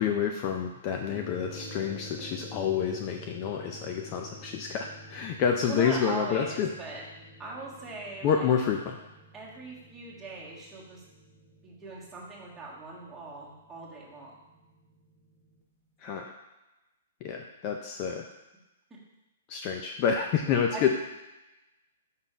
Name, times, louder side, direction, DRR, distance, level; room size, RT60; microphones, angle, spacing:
voice 1, 0.0-6.7 8.2-9.0 16.0-16.3 17.2-18.3 19.5-20.9, left 7 dB, 30° left, 3 dB, 0.4 m, -28 dB
sound 1, 1.1-15.6, equal, 15° left, 1.0 m, -49 dB
voice 2, 5.7-7.0 7.4-8.5 9.3-11.0 11.6-14.3 16.0-16.2 20.7-20.9, right 3 dB, 10° right, -7 dB, 1.6 m, -40 dB
5.6 x 4.0 x 5.0 m, 1.0 s
hypercardioid pair, 155°, 0 cm